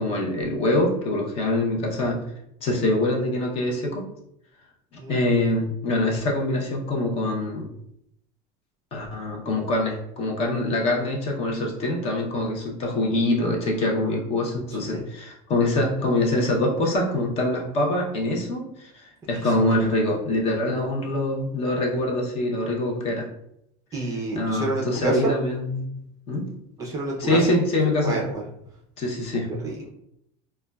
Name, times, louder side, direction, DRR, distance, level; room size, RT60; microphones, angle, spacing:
voice 1, 0.0-2.3 2.6-4.1 5.1-7.7 8.9-23.3 24.3-25.9 26.3-26.5 27.2-28.2 29.0-29.6, left 1 dB, 30° left, 0 dB, 0.6 m, -24 dB
voice 2, 23.9-25.3 26.8-27.4 28.0-28.4 29.3-29.9, right 2 dB, 15° right, -2 dB, 0.4 m, -28 dB
5.0 x 2.2 x 2.2 m, 0.76 s
cardioid pair, 175°, 19 cm